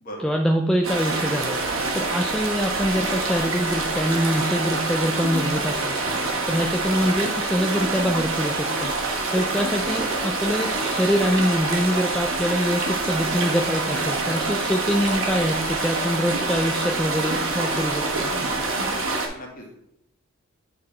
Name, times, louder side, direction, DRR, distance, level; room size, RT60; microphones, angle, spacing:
voice 1, 0.2-1.6 1.9-6.0 6.5-8.9 9.3-18.3, equal, 5° left, 1 dB, 0.3 m, -24 dB
sound 1, 0.8-19.3, right 3 dB, 65° right, 1.2 m, -26 dB
voice 2, 19.3-19.8, equal, 40° left, -1 dB, 1.7 m, -41 dB
8.5 x 3.8 x 4.3 m, 0.81 s
head